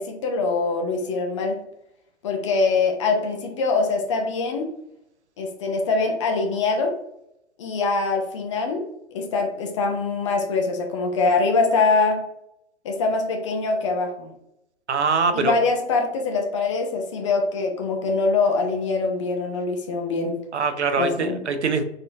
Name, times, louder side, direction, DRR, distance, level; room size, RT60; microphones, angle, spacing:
voice 1, 0.0-1.6 2.2-4.7 5.4-6.9 7.6-8.8 9.1-12.2 12.8-14.3 15.3-20.4 21.0-21.4, left 4 dB, 30° left, 2 dB, 0.5 m, -23 dB
voice 2, 14.9-15.6 20.5-21.8, right 5 dB, 75° right, 8 dB, 0.6 m, -23 dB
4.0 x 2.7 x 2.6 m, 0.79 s
figure-of-eight pair, 120°, 34 cm